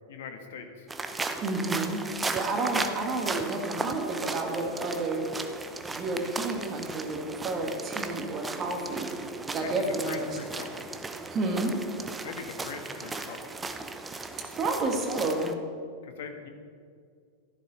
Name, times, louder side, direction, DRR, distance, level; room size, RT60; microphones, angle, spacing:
voice 1, 0.1-0.8 9.6-9.7 10.0-10.9 12.2-13.5 16.0-16.5, left 6 dB, 55° left, 6 dB, 1.4 m, -41 dB
sound 1, 0.9-15.5, right 3 dB, 15° right, 0.7 m, -36 dB
voice 2, 1.4-2.0 2.3-5.3 5.9-9.1 9.5-10.4 11.3-11.8 14.6-15.5, right 2 dB, 30° right, 2 dB, 2.1 m, -30 dB
13.5 x 11.5 x 4.4 m, 2.2 s
figure-of-eight pair, 90°, 0 cm